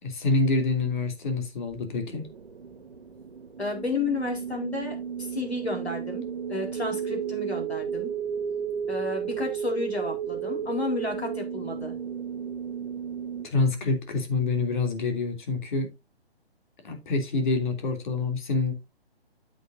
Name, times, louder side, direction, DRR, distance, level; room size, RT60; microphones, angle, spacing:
voice 1, 0.0-2.3 13.4-15.9 16.8-18.7, left 3 dB, 50° left, 3.0 m, -26 dB
sound 1, 1.7-13.5, right 8 dB, 65° right, 1.8 m, -33 dB
voice 2, 3.6-8.1 8.9-11.9, left 3 dB, 85° left, 4.4 m, -32 dB
9.6 x 8.1 x 2.7 m
figure-of-eight pair, 135°, 31 cm